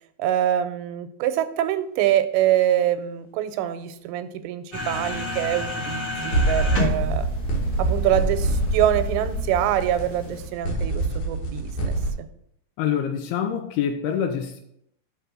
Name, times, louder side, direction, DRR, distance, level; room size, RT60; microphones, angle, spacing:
voice 1, 0.2-7.3 7.8-12.3, right 11 dB, 90° right, 11 dB, 2.8 m, -25 dB
sound 1, 4.7-10.5, left 3 dB, 40° left, 1.3 m, -32 dB
sound 2, 5.0-5.1 6.3-12.1, right 1 dB, 55° left, 2.4 m, -25 dB
voice 2, 12.8-14.6, left 8 dB, 80° left, 6 dB, 2.4 m, -25 dB
6.9 x 5.0 x 6.1 m, 0.73 s
omnidirectional pair, 4.9 m